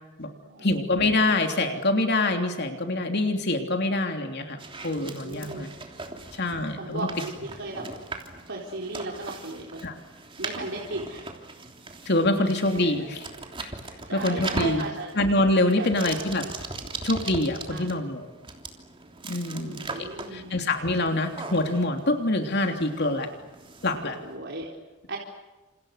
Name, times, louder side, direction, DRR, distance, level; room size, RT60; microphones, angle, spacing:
voice 1, 0.6-5.7 6.3-7.1 9.8-10.0 12.0-13.3 13.6-13.7 14.1-14.8 15.1-16.4 17.0-18.3 19.3-23.3 23.8-24.2, left 2 dB, 50° left, 4 dB, 3.2 m, -25 dB
sound 1, 4.6-24.4, right 3 dB, 25° right, 3.2 m, -40 dB
voice 2, 4.9-5.7 6.8-7.8 8.5-9.8 10.4-11.2 12.4-12.5 12.8-13.1 14.1-15.1 15.8-16.2 17.7-17.9 19.5-20.5 24.2-24.7 25.1-25.2, right 2 dB, 55° right, -1 dB, 4.2 m, -36 dB
29.5 x 28.5 x 6.7 m, 1.1 s
head